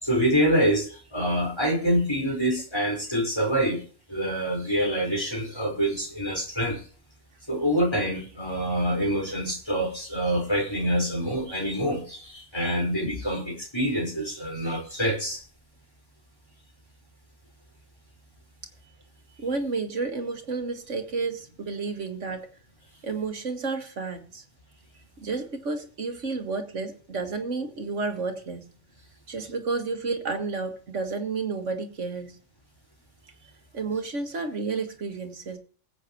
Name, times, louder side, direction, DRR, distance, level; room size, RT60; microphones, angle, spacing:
voice 1, 0.0-3.8 4.1-6.8 7.5-15.4, equal, 20° left, 0 dB, 4.9 m, -26 dB
voice 2, 19.4-22.5 23.0-24.4 25.2-28.6 29.3-32.4 33.7-35.6, right 4 dB, 80° right, 5 dB, 2.1 m, -31 dB
20.5 x 8.5 x 3.1 m, 0.42 s
omnidirectional pair, 1.2 m